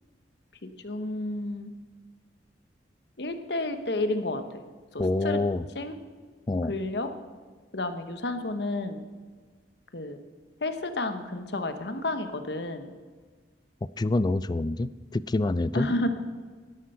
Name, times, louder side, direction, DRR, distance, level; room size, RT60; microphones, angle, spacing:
voice 1, 0.6-1.7 3.2-4.4 4.9-5.4 5.7-6.0 6.7-7.1 7.7-9.0 9.9-10.2 10.6-12.9 15.7-16.1, left 2 dB, 65° left, 9 dB, 1.2 m, -31 dB
voice 2, 5.0-5.6 6.5-6.7 14.0-15.9, left 2 dB, 25° left, 17 dB, 0.3 m, -26 dB
12.0 x 12.0 x 5.7 m, 1.6 s
head